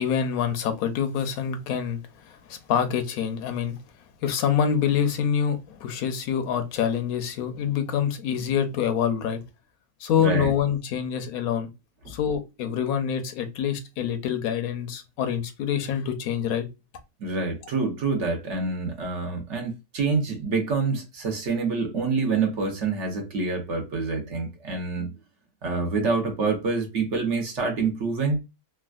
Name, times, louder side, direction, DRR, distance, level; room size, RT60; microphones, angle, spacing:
voice 1, 0.0-3.8 4.2-9.4 10.0-11.7 12.1-16.7, left 8 dB, 75° left, 1.1 m, -26 dB
voice 2, 10.2-10.5 12.0-12.1 17.2-25.1 25.6-28.4, right 4 dB, 60° right, 1.0 m, -27 dB
3.4 x 2.2 x 2.3 m
omnidirectional pair, 1.5 m